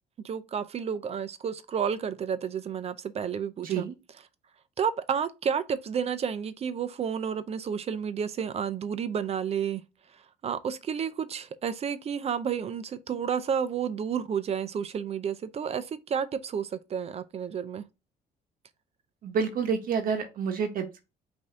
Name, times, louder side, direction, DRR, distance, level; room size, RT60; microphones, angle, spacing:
voice 1, 0.2-3.9 4.8-9.8 10.4-17.8, right 7 dB, 40° right, 0.5 m, -31 dB
voice 2, 3.6-3.9 19.2-21.0, right 6 dB, 55° right, 0.9 m, -29 dB
5.4 x 2.7 x 3.6 m
cardioid pair, 110°, 17 cm